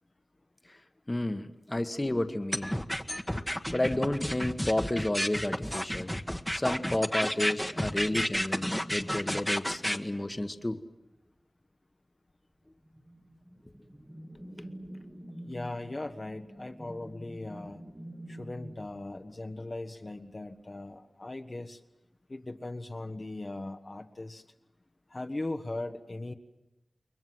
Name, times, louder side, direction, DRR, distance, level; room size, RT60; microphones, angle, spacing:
voice 1, 1.1-2.7 3.7-6.1 6.5-10.8, left 1 dB, 25° left, 9 dB, 1.4 m, -31 dB
sound 1, 2.5-10.0, equal, 5° left, 1.3 m, -31 dB
sound 2, 3.7-5.5 6.0-10.8 12.8-19.4, right 1 dB, 15° right, 2.0 m, -48 dB
voice 2, 15.5-17.8 18.3-21.8 22.3-24.4 25.1-26.3, left 2 dB, 45° left, 5 dB, 1.2 m, -39 dB
29.0 x 22.5 x 7.8 m, 0.96 s
wide cardioid pair, 60°, 0 cm